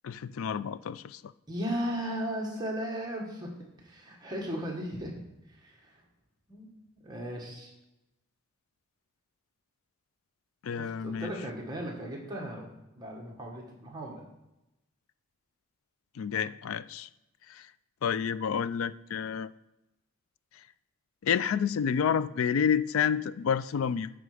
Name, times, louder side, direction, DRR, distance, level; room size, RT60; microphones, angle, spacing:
voice 1, 0.0-1.3 10.6-11.3 16.1-17.1 17.5-17.7 18.0-19.5 21.2-24.1, left 7 dB, 70° left, 16 dB, 0.3 m, -29 dB
voice 2, 1.5-5.1 5.5-6.0 6.5-7.7 10.8-12.7 12.9-14.2, equal, 20° right, -2 dB, 1.5 m, -36 dB
10.0 x 4.8 x 4.9 m, 0.92 s
head